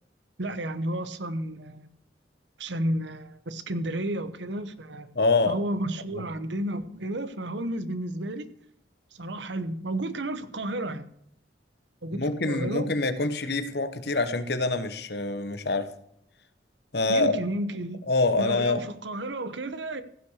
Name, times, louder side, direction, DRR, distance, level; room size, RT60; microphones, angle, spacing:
voice 1, 0.4-1.9 2.6-5.1 5.5-8.5 9.1-11.0 12.0-12.9 17.1-18.0 18.4-20.0, right 1 dB, 75° right, 13 dB, 1.1 m, -32 dB
voice 2, 5.1-5.6 6.1-6.2 12.1-15.9 16.9-17.4 18.1-18.8, left 3 dB, 60° left, 11 dB, 1.1 m, -25 dB
16.0 x 6.0 x 6.5 m, 0.73 s
head